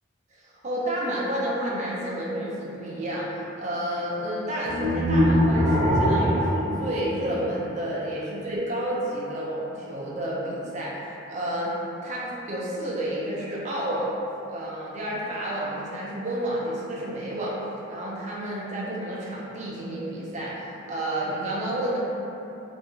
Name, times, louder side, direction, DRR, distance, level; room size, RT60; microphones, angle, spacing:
voice 1, 0.3-11.0 11.3-11.7 12.0-14.1 14.5-17.5 17.9-22.0, right 1 dB, 35° right, -6 dB, 0.4 m, -30 dB
sound 1, 4.7-7.8, equal, 90° left, 1.0 m, -23 dB
2.8 x 2.2 x 2.6 m, 3.0 s
head